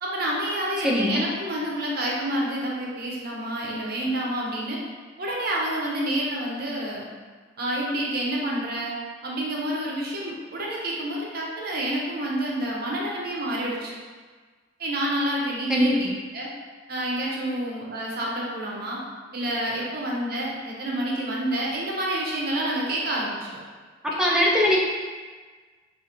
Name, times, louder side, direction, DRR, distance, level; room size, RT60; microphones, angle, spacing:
voice 1, 0.0-4.8 5.2-7.1 7.6-9.0 9.2-13.9 14.8-16.1 16.3-16.5 16.9-19.0 19.3-23.4, right 1 dB, 55° right, -3 dB, 0.7 m, -28 dB
voice 2, 0.8-1.2 15.7-16.0 24.2-24.8, equal, 5° right, -4 dB, 0.4 m, -20 dB
3.8 x 2.5 x 2.9 m, 1.5 s
head